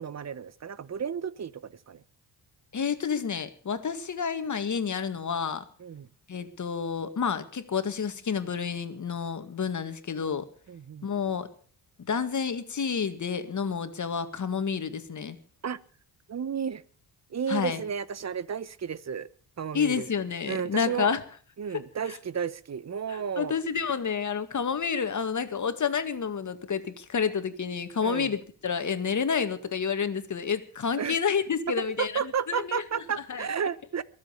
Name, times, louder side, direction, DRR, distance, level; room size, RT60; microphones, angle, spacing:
voice 1, 0.0-2.0 5.8-6.1 10.7-11.1 15.6-15.8 16.3-16.8 17.3-19.3 19.6-20.1 20.5-21.1 21.6-23.5 28.0-28.3 31.0-31.2 32.0-34.0, right 7 dB, 40° right, 18 dB, 1.1 m, -32 dB
voice 2, 2.7-5.6 6.3-10.5 11.0-11.5 12.1-15.4 17.5-17.8 19.7-21.2 22.1-22.2 23.1-33.0 33.3-33.4, left 6 dB, 45° left, 10 dB, 2.0 m, -29 dB
22.5 x 7.7 x 7.1 m, 0.43 s
cardioid pair, 80°, 40 cm